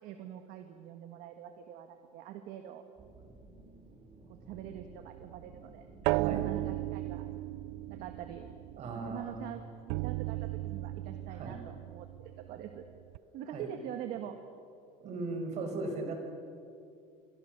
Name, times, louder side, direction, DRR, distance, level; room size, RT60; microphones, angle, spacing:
voice 1, 0.0-2.8 4.3-7.3 7.9-8.5 8.9-12.9 13.3-14.4, right 10 dB, 60° right, 6 dB, 1.7 m, -44 dB
sound 1, 3.0-9.5, right 3 dB, 25° right, 2.9 m, -55 dB
sound 2, 4.5-9.3 9.9-13.2, right 19 dB, 75° right, 0.5 m, -36 dB
voice 2, 6.1-6.5 8.8-9.6 11.3-11.6 13.5-13.7 15.0-16.2, right 3 dB, 45° right, 4 dB, 5.6 m, -38 dB
29.0 x 24.0 x 6.8 m, 2.4 s
cardioid pair, 145°, 16 cm